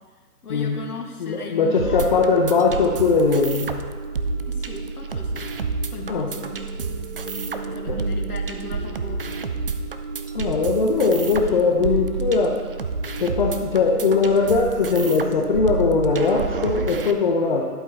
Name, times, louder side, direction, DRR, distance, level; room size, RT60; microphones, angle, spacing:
voice 1, 0.4-2.1 2.8-2.9 4.5-5.5 5.9-6.7 7.5-9.4, left 4 dB, 70° left, 2 dB, 1.6 m, -37 dB
voice 2, 1.2-3.7 6.1-6.3 7.9-8.0 10.3-12.6 13.2-17.6, left 4 dB, 30° left, -1 dB, 0.7 m, -20 dB
sound 1, 1.8-17.1, right 4 dB, 40° right, 0.4 m, -29 dB
11.5 x 8.2 x 3.4 m, 1.5 s
figure-of-eight pair, 140°, 47 cm